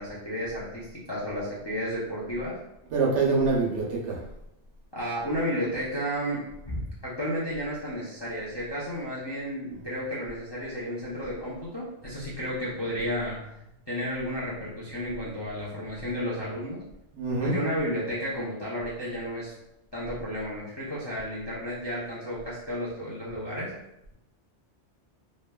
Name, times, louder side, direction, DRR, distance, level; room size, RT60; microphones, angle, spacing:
voice 1, 0.0-2.6 4.9-13.4 13.9-16.8 17.4-19.5 19.9-23.7, equal, 35° left, -9 dB, 0.4 m, -32 dB
voice 2, 2.9-4.2 17.1-17.6, right 4 dB, 80° right, -3 dB, 1.0 m, -25 dB
3.0 x 2.1 x 2.2 m, 0.85 s
omnidirectional pair, 1.2 m